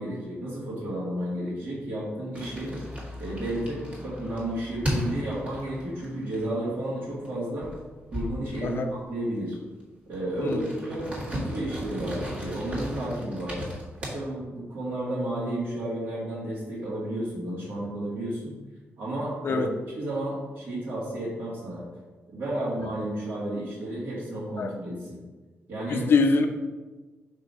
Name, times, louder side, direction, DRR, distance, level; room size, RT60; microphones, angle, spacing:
voice 1, 0.0-2.8 3.2-7.7 8.1-9.6 10.1-13.6 14.0-18.6 19.0-19.7 20.0-21.9 22.3-25.2 25.7-26.1, right 1 dB, 55° right, -9 dB, 1.9 m, -32 dB
sound 1, 2.3-6.8 7.1-7.3 7.6-8.9 9.5-9.6 9.9-14.1, equal, 25° right, 1.9 m, -35 dB
voice 2, 10.4-10.8 19.4-19.7 24.6-24.7 25.9-26.5, left 4 dB, 55° left, 6 dB, 0.7 m, -24 dB
5.4 x 3.9 x 5.3 m, 1.3 s
wide cardioid pair, 135°, 5 cm